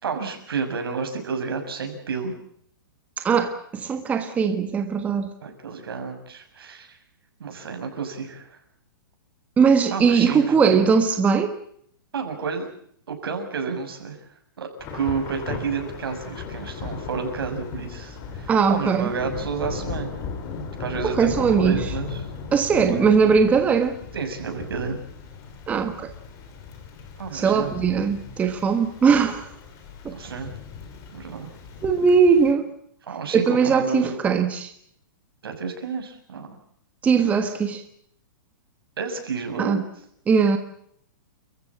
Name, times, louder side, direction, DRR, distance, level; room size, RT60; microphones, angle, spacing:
voice 1, 0.0-2.3 5.4-7.0 7.4-8.6 9.9-10.8 12.1-12.7 13.1-14.2 14.6-14.7 14.9-20.1 20.8-22.3 22.7-23.1 24.1-25.0 27.2-27.7 30.1-30.5 31.1-31.5 33.1-34.1 35.4-36.6 39.0-39.8, right 5 dB, 80° right, 5 dB, 6.6 m, -30 dB
voice 2, 3.2-5.3 9.6-11.6 18.5-19.1 21.0-21.8 22.5-24.0 25.7-26.1 27.3-29.4 30.0-30.1 31.8-32.7 33.3-34.7 37.0-37.8 39.6-39.8 40.3-40.6, right 6 dB, 10° right, 7 dB, 1.4 m, -20 dB
Thunder / Rain, 14.8-32.5, left 5 dB, 25° left, 3.5 m, -37 dB
29.5 x 15.0 x 8.4 m, 0.66 s
hypercardioid pair, 160°, 12 cm